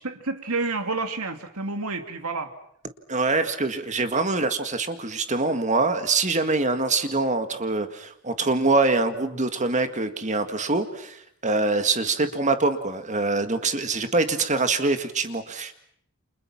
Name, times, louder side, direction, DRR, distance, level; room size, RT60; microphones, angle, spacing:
voice 1, 0.0-2.5, right 3 dB, 80° right, 7 dB, 2.8 m, -29 dB
voice 2, 3.1-15.7, right 3 dB, 35° right, 8 dB, 1.9 m, -24 dB
30.0 x 27.0 x 6.0 m, 0.68 s
head